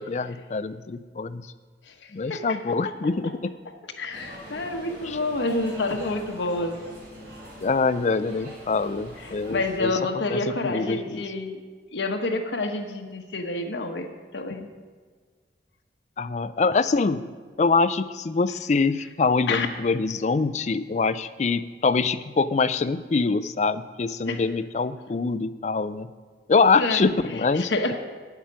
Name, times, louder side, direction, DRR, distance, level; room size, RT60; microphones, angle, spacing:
voice 1, 0.0-1.5 2.1-3.5 5.1-5.2 7.6-9.9 10.3-11.2 16.2-17.3 17.6-26.1 26.5-27.7, left 4 dB, 40° left, 13 dB, 0.4 m, -24 dB
voice 2, 1.9-2.6 3.0-3.1 4.0-6.8 9.2-11.6 11.9-14.7 19.5-19.7 24.3-24.4 26.8-27.0 27.5-28.0, left 2 dB, 80° left, 4 dB, 1.1 m, -28 dB
sound 1, 4.1-9.8, equal, 65° right, 3.6 m, -43 dB
9.4 x 8.1 x 6.2 m, 1.5 s
head